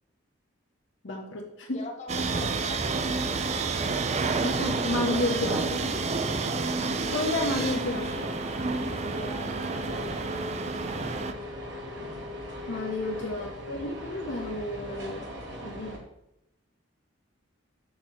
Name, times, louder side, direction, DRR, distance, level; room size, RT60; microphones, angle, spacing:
voice 1, 1.0-1.8 4.4-6.0 7.1-8.3 12.7-15.3 15.6-16.0, left 2 dB, 65° left, 0 dB, 0.9 m, -31 dB
voice 2, 1.7-3.0 9.1-11.2 12.7-13.2, left 1 dB, 35° left, 0 dB, 1.1 m, -45 dB
sound 1, 2.1-11.3, right 4 dB, 35° right, 0.4 m, -30 dB
sound 2, 2.2-16.0, left 1 dB, 55° right, 1.3 m, -39 dB
6.4 x 2.9 x 5.7 m, 0.85 s
head